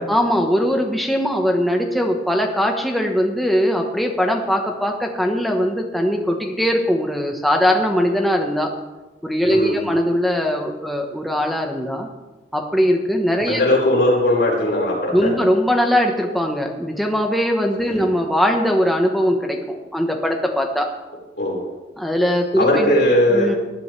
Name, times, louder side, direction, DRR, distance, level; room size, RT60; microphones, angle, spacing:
voice 1, 0.1-8.7 9.2-12.1 12.5-13.6 15.1-20.9 22.0-22.9 23.3-23.5, equal, ahead, 1 dB, 1.0 m, -20 dB
voice 2, 9.4-9.9 13.5-15.3 17.9-18.1 21.4-21.6 22.6-23.5, left 1 dB, 65° left, -4 dB, 4.8 m, -18 dB
19.0 x 10.5 x 3.3 m, 1.1 s
head